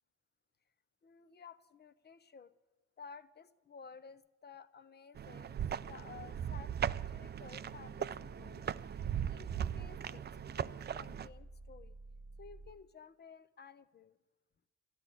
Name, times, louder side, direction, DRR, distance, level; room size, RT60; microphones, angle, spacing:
voice 1, 1.0-2.5 3.0-5.6 5.9-6.7 7.1-8.6 9.3-10.2 10.6-12.0 12.4-14.2, left 5 dB, 35° left, 12 dB, 0.8 m, -54 dB
sound 1, 5.2-11.3, right 9 dB, 35° right, 0.4 m, -39 dB
sound 2, 7.6-12.8, right 1 dB, 10° right, 1.6 m, -54 dB
13.0 x 10.0 x 8.4 m, 1.2 s
cardioid pair, 90°, 30 cm